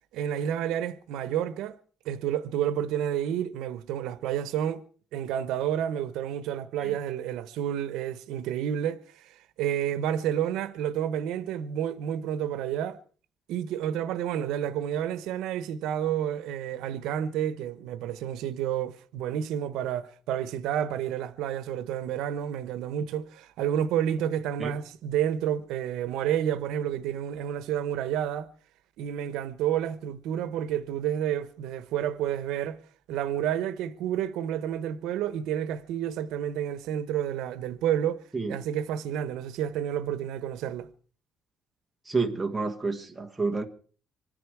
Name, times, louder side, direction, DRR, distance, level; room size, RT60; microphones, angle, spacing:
voice 1, 0.1-1.7 2.0-4.8 5.1-13.0 13.5-28.5 29.0-32.8 33.1-40.9, right 10 dB, 80° right, 1.1 m, -30 dB
voice 2, 42.1-43.6, right 4 dB, 10° right, 1.5 m, -29 dB
25.5 x 10.5 x 4.7 m
cardioid pair, 180°, 0 cm